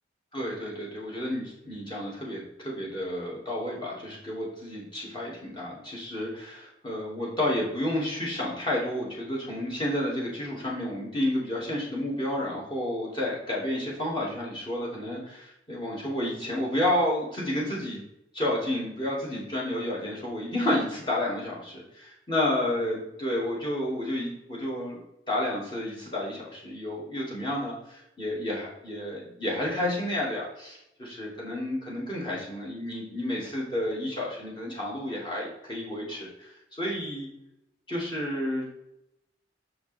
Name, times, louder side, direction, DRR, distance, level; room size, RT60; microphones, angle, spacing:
voice 1, 0.3-18.0 18.3-25.0 25.3-37.3 37.9-38.7, left 1 dB, 25° left, -4 dB, 2.0 m, -31 dB
6.2 x 5.0 x 3.4 m, 0.84 s
head